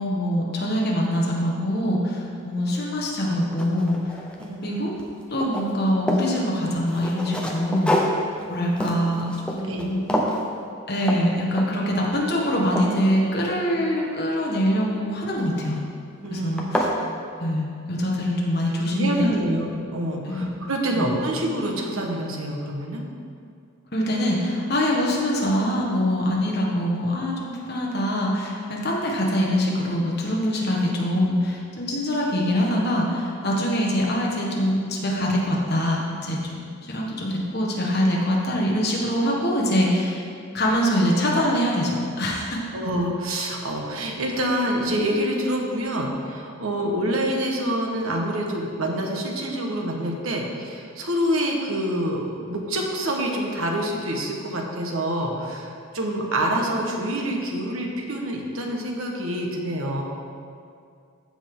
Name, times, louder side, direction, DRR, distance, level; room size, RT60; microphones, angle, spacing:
voice 1, 0.0-4.2 4.6-4.9 5.3-8.0 8.5-10.0 10.9-15.8 16.3-16.9 17.4-19.6 20.3-20.5 20.9-21.1 23.9-40.3 40.5-42.6, equal, 45° left, -2 dB, 1.4 m, -24 dB
sound 1, 2.7-2.8 3.2-4.7 5.0-6.3 6.8-9.8 10.1-10.4 11.0-11.2 11.5-11.9 12.3-13.9 15.4-15.8 16.2-16.3 16.6-17.0, equal, 5° left, 0.6 m, -28 dB
voice 2, 16.2-16.5 18.9-23.0 42.7-60.0, right 1 dB, 75° right, 0 dB, 1.3 m, -26 dB
14.5 x 5.0 x 3.8 m, 2.3 s
head